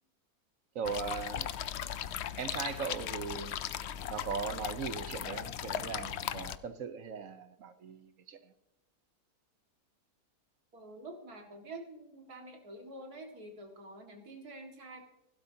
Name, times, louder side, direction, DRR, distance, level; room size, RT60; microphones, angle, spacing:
voice 1, 0.7-1.5 2.4-3.5 4.1-8.4, right 6 dB, 65° right, 10 dB, 1.2 m, -39 dB
sound 1, 0.8-6.6, left 9 dB, 60° left, 0.7 m, -38 dB
voice 2, 10.7-15.0, right 2 dB, 80° right, 2 dB, 2.7 m, -47 dB
16.0 x 12.0 x 2.8 m, 0.90 s
omnidirectional pair, 1.6 m